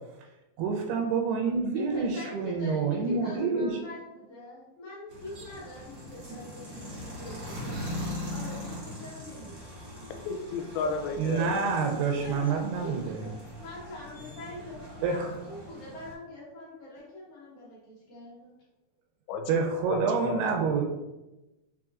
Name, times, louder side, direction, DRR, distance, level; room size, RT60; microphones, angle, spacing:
voice 1, 0.6-3.7 11.2-13.3 15.0-15.3 19.5-20.8, right 5 dB, 85° right, 1 dB, 2.5 m, -28 dB
voice 2, 1.7-7.8 8.3-9.7 12.2-18.5, left 2 dB, 65° left, -7 dB, 2.0 m, -43 dB
sound 1, 5.1-16.1, left 1 dB, 65° right, 1.1 m, -41 dB
voice 3, 10.3-11.5 19.3-20.4, left 4 dB, 80° left, 5 dB, 2.4 m, -33 dB
6.1 x 2.9 x 2.4 m, 1.0 s
omnidirectional pair, 4.5 m